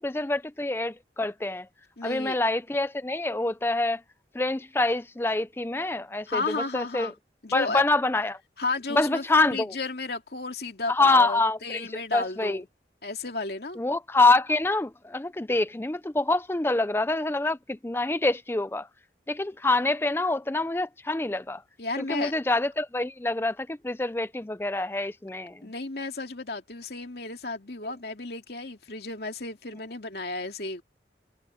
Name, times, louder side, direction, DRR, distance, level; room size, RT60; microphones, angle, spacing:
voice 1, 0.0-1.7 2.0-4.0 4.3-7.1 7.5-8.4 8.9-9.7 10.9-12.6 13.8-18.9 19.3-21.6 22.1-25.7, left 2 dB, 15° left, 0.4 m, -26 dB
voice 2, 2.0-2.3 6.3-7.1 7.4-7.8 8.6-12.6 13.0-13.8 21.8-22.3 25.6-30.8, left 3 dB, 65° left, 2.5 m, -33 dB
head